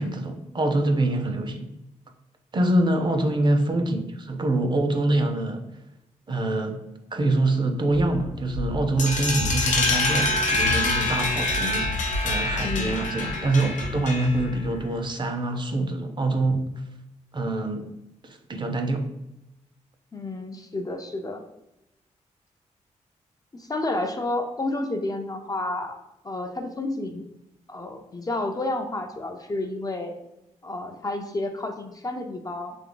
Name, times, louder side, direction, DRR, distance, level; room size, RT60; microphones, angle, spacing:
voice 1, 0.0-1.7 2.5-5.7 6.3-6.8 7.1-16.7 17.3-17.9 18.2-19.1, right 2 dB, 35° right, 0.6 m, -25 dB
Run, 7.9-14.9, left 1 dB, 90° right, 1.4 m, -34 dB
sound 1, 9.0-14.5, left 2 dB, 75° left, 0.7 m, -26 dB
voice 2, 12.6-13.1 20.1-21.4 23.5-27.3 27.7-30.1 30.6-32.8, left 2 dB, 30° left, 0.5 m, -30 dB
3.5 x 3.2 x 3.8 m
cardioid pair, 85°, 13 cm